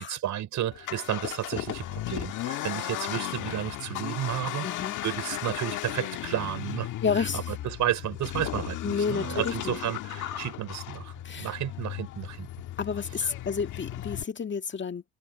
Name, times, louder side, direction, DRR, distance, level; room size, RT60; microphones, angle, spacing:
voice 1, 0.0-4.7 5.0-12.5 13.2-13.3, right 12 dB, 75° right, 5.3 m, -32 dB
Accelerating revving vroom, 0.7-14.2, left 13 dB, 85° left, 1.6 m, -36 dB
voice 2, 4.6-4.9 7.0-7.5 8.8-9.8 11.2-11.5 12.8-15.1, left 6 dB, 40° left, 1.8 m, -30 dB
cardioid pair, 90°, 30 cm